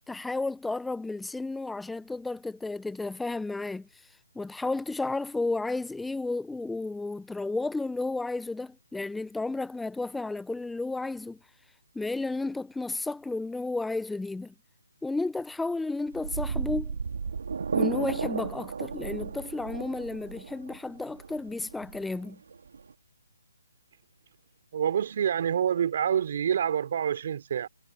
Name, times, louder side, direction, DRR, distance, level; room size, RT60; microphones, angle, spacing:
voice 1, 0.1-3.9 4.3-11.4 11.9-14.5 15.0-17.0 17.7-22.4, left 3 dB, 5° left, 0.6 m, -32 dB
sound 1, 16.1-22.9, right 5 dB, 65° right, 2.3 m, -33 dB
voice 2, 24.7-27.7, right 8 dB, 50° right, 3.2 m, -27 dB
figure-of-eight pair, 150°, 0 cm